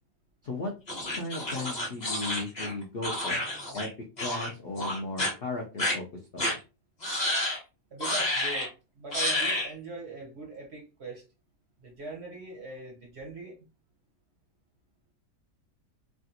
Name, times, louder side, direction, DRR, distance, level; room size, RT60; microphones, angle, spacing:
sound 1, 0.9-3.9 4.2-4.5 4.8-5.3 5.8-6.0 6.4-6.6 7.0-7.6 8.0-8.7 9.1-9.7, left 1 dB, 30° left, 1.0 m, -30 dB
voice 1, 1.1-3.5 3.7-3.9 4.2-6.0 6.3-6.6, left 2 dB, 80° left, 0.5 m, -36 dB
voice 2, 7.9-11.2 11.8-13.7, right 3 dB, 55° right, 0.7 m, -41 dB
3.2 x 2.4 x 2.7 m
omnidirectional pair, 1.8 m